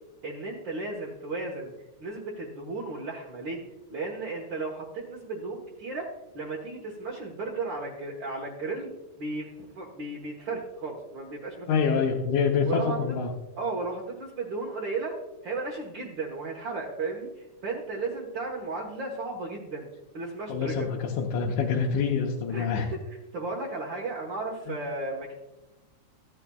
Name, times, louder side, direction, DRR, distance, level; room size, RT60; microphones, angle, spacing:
voice 1, 0.2-1.7 2.0-3.6 3.9-8.9 9.2-11.7 12.7-13.0 13.6-19.9 20.1-20.9 22.5-22.8 23.3-25.3, right 3 dB, 50° right, -3 dB, 1.6 m, -34 dB
voice 2, 11.7-13.3 20.5-22.9 24.7-24.8, left 6 dB, 85° left, -1 dB, 2.4 m, -26 dB
15.0 x 9.7 x 2.3 m, 1.0 s
omnidirectional pair, 3.3 m